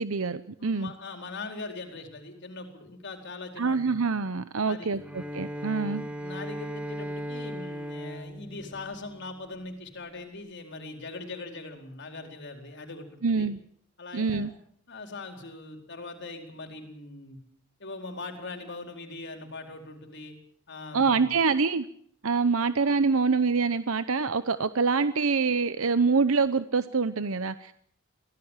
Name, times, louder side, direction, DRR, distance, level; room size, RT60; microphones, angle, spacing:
voice 1, 0.0-0.9 3.6-6.0 13.2-13.6 14.1-14.5 20.9-21.9 22.2-27.7, right 4 dB, 75° right, 12 dB, 0.9 m, -25 dB
voice 2, 0.6-4.0 4.7-5.0 5.8-13.5 14.0-14.6 14.9-17.4 17.8-20.3 20.7-21.3, left 3 dB, 55° left, 4 dB, 4.4 m, -41 dB
Bowed string instrument, 4.9-9.6, equal, 5° right, 2.6 m, -37 dB
24.5 x 17.5 x 7.4 m, 0.63 s
head